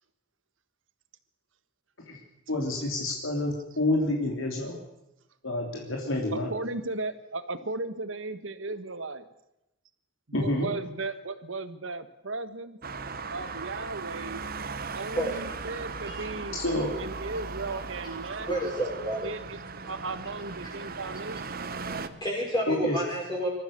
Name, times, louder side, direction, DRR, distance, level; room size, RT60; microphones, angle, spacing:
voice 1, 2.5-4.8 5.4-6.5 10.3-10.7 16.6-16.9 22.7-23.0, left 1 dB, 80° left, 0 dB, 3.6 m, -28 dB
voice 2, 6.3-9.3 10.3-12.8 13.3-14.4 14.9-16.6 17.0-18.5 19.2-19.6 19.8-21.6, right 3 dB, 70° right, 12 dB, 1.5 m, -36 dB
Traffic noise roadway noise, 12.8-22.1, right 4 dB, 45° right, 1.1 m, -38 dB
voice 3, 15.1-15.6 16.1-16.3 18.5-19.3 21.9-23.5, right 1 dB, 20° left, -4 dB, 5.7 m, -30 dB
26.5 x 14.5 x 6.8 m, 0.92 s
head